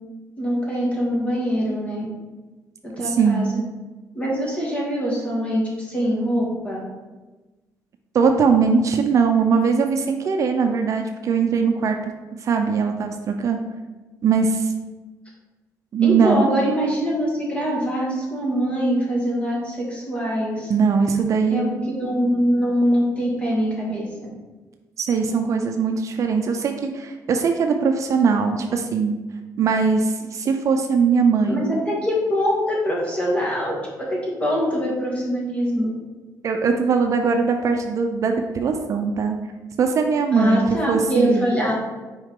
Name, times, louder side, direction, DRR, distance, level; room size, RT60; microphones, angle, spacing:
voice 1, 0.4-2.1 2.8-3.5 4.2-6.8 16.0-20.7 21.5-24.1 31.5-32.6 32.8-33.7 34.0-35.9 40.3-41.7, equal, 20° left, -4 dB, 1.9 m, -23 dB
voice 2, 3.0-3.5 8.1-12.1 12.4-13.6 14.2-14.7 15.9-16.5 20.7-21.7 25.0-29.1 29.6-31.7 36.4-39.4 39.8-41.5, right 5 dB, 50° right, 4 dB, 0.5 m, -20 dB
6.0 x 4.8 x 3.7 m, 1.2 s
cardioid pair, 135°, 7 cm